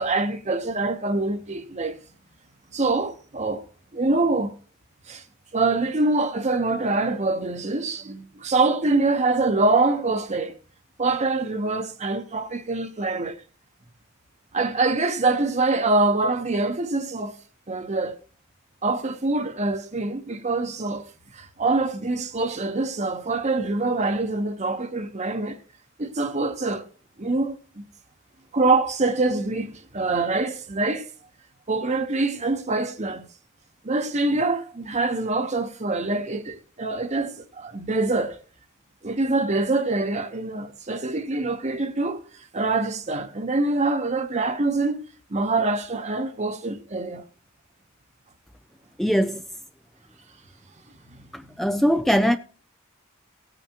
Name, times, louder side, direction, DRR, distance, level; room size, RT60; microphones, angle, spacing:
voice 1, 0.0-2.0 2.7-3.6 3.9-4.5 5.1-5.2 5.5-10.5 11.0-13.4 14.5-17.3 17.7-18.2 18.8-21.1 21.3-25.6 26.0-26.8 27.2-27.8 28.5-31.1 31.7-33.3 33.8-38.4 39.0-42.2 42.5-47.2, right 3 dB, 35° right, 1.0 m, -25 dB
voice 2, 49.0-49.4 51.3-52.4, equal, ahead, 0.4 m, -21 dB
17.5 x 9.1 x 3.0 m
head